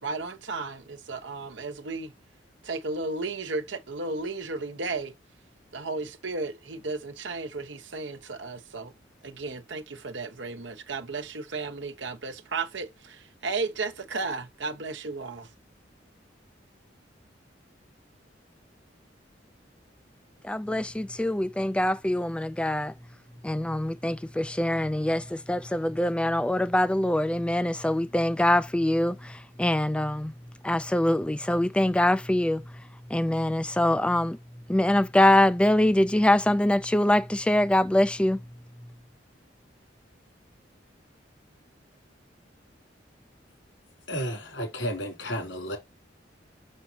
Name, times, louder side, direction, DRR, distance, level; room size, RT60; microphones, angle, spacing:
voice 1, 0.0-2.1 2.6-5.1 5.7-8.9 9.2-15.5, right 3 dB, 80° right, 1.1 m, -34 dB
voice 2, 20.4-22.9 23.4-30.3 30.6-34.4 34.7-38.4, left 1 dB, 5° left, 0.3 m, -24 dB
voice 3, 44.1-45.8, equal, 80° left, 3.3 m, -32 dB
6.2 x 6.1 x 2.8 m
head